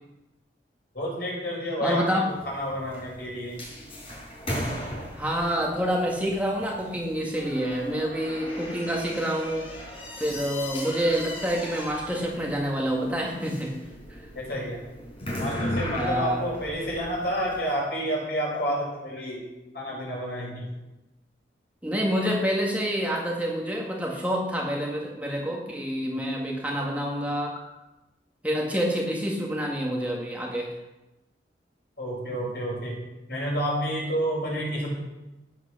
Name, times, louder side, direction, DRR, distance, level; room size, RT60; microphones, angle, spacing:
voice 1, 0.9-2.0 2.5-3.5 14.3-14.8 15.4-19.4 19.7-20.6 32.0-32.9 33.3-34.9, equal, 60° left, -4 dB, 6.7 m, -29 dB
voice 2, 1.8-2.3 5.1-9.7 10.2-13.8 14.1-14.2 15.9-16.4 21.8-27.6 28.4-30.8, equal, 10° right, -2 dB, 1.9 m, -27 dB
sound 1, 2.3-17.7, equal, 30° left, 4.7 m, -37 dB
14.0 x 9.8 x 6.6 m, 1.0 s
head